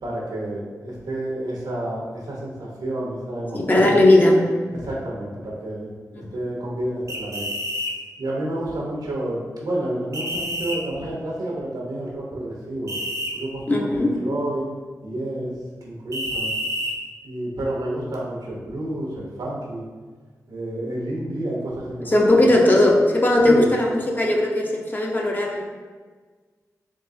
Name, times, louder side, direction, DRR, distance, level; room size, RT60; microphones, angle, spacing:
voice 1, 0.0-4.0 4.7-7.5 8.2-12.9 13.3-14.7 15.0-15.6 15.8-16.5 17.2-19.8 20.5-22.5 23.4-23.7, right 1 dB, 80° right, -4 dB, 0.9 m, -30 dB
voice 2, 3.5-4.4 6.1-6.3 13.7-14.2 22.1-25.7, left 1 dB, 25° left, -1 dB, 0.7 m, -18 dB
sound 1, 7.1-7.9 10.1-10.8 12.9-13.3 16.1-17.0, equal, 50° right, 0.7 m, -28 dB
3.7 x 3.3 x 2.7 m, 1.4 s
cardioid pair, 45°, 7 cm